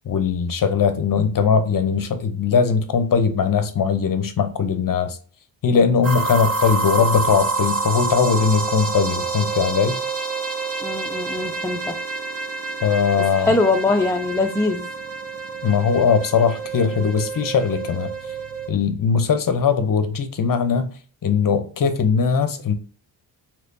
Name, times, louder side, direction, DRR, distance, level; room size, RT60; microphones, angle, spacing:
voice 1, 0.1-5.2 5.6-10.0 12.8-13.6 15.6-18.1 18.7-20.9 21.2-22.7, left 6 dB, 45° left, 0.7 m, -20 dB
sound 1, 6.0-18.7, right 3 dB, 30° right, 0.8 m, -27 dB
voice 2, 10.8-12.0 13.4-14.9, left 3 dB, 10° left, 0.3 m, -22 dB
3.2 x 2.9 x 2.6 m
cardioid pair, 80°, 47 cm